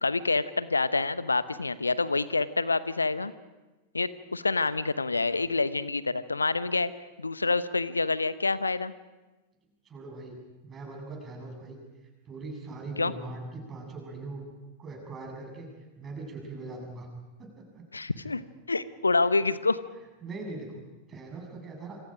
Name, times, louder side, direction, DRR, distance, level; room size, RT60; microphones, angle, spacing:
voice 1, 0.0-3.3 3.9-6.9 7.2-8.9 13.0-13.1 17.9-18.4 18.7-19.8, left 3 dB, 80° left, 15 dB, 0.9 m, -27 dB
voice 2, 9.8-11.8 12.2-14.4 14.8-15.7 15.9-17.1 17.4-17.8 20.2-20.7 21.1-22.0, right 3 dB, 25° right, 1 dB, 8.0 m, -41 dB
27.5 x 26.0 x 5.1 m, 1.1 s
figure-of-eight pair, 90°, 0 cm